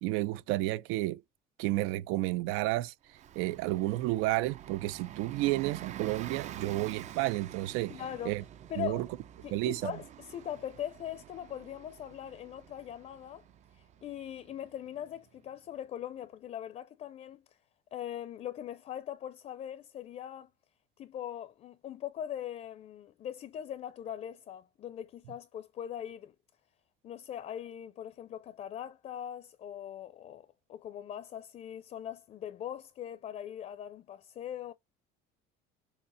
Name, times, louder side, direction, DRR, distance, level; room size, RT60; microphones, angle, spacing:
voice 1, 0.0-1.2 1.6-2.9 3.4-7.9 8.3-8.4 8.8-9.1 9.5-9.9, right 18 dB, 80° right, 0.6 m, -31 dB
Bus, 3.1-15.4, right 11 dB, 35° right, 0.4 m, -48 dB
voice 2, 7.9-8.4 8.7-9.1 9.4-13.4 13.7-17.6 17.9-20.5 21.0-26.3 27.0-34.7, left 10 dB, 35° left, 0.5 m, -41 dB
7.1 x 2.8 x 5.5 m
cardioid pair, 160°, 21 cm